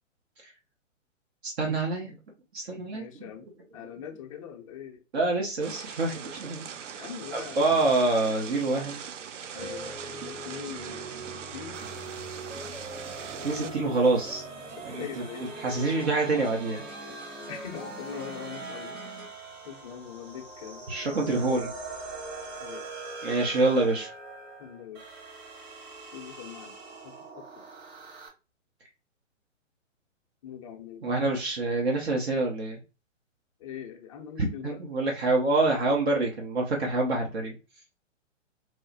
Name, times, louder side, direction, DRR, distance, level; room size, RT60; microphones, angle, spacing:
voice 1, 1.4-2.1 2.5-3.1 5.1-7.0 7.3-9.0 13.4-14.4 14.8-15.0 15.6-16.8 20.9-21.7 23.2-24.1 31.0-32.8 34.4-37.5, right 2 dB, 55° right, 0 dB, 1.0 m, -26 dB
voice 2, 2.9-3.5 3.7-5.0 6.7-7.8 9.5-11.8 13.6-13.9 14.9-15.5 17.5-19.0 19.6-21.7 22.6-22.8 24.6-25.2 26.1-26.7 27.0-27.6 30.4-31.0 32.1-32.2 33.6-34.8, left 8 dB, 25° left, 2 dB, 0.5 m, -42 dB
sound 1, 5.6-13.7, right 7 dB, 70° right, 0.5 m, -41 dB
sound 2, 9.6-19.3, right 1 dB, 85° right, 1.4 m, -42 dB
sound 3, 11.7-28.3, right 3 dB, 35° right, 1.4 m, -43 dB
4.7 x 2.0 x 2.7 m, 0.31 s
figure-of-eight pair, 125°, 38 cm